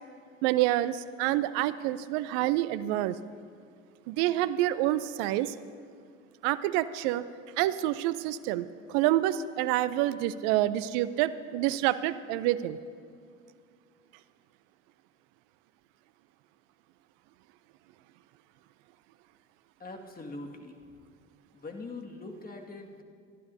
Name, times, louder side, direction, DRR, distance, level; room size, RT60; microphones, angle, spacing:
voice 1, 0.4-3.2 4.1-5.5 6.4-7.2 7.6-12.8, right 14 dB, 65° right, 15 dB, 0.6 m, -27 dB
voice 2, 19.8-20.8 21.5-23.0, left 2 dB, 20° left, 2 dB, 2.0 m, -42 dB
26.0 x 11.5 x 2.7 m, 2.3 s
hypercardioid pair, 70°, 39 cm